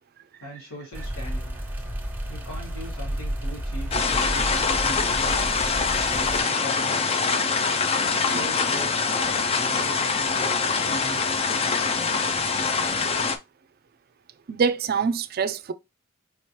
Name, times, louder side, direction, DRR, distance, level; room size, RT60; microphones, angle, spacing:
voice 1, 0.4-1.6 2.3-5.2 5.9-7.3 8.2-11.6, equal, 85° left, 2.4 m, -40 dB
sound 1, 0.9-6.4, equal, 10° right, 1.1 m, -32 dB
sound 2, 3.9-13.4, left 4 dB, 30° left, 0.4 m, -24 dB
voice 2, 14.5-15.7, right 5 dB, 45° right, 0.4 m, -25 dB
5.0 x 2.9 x 3.1 m
head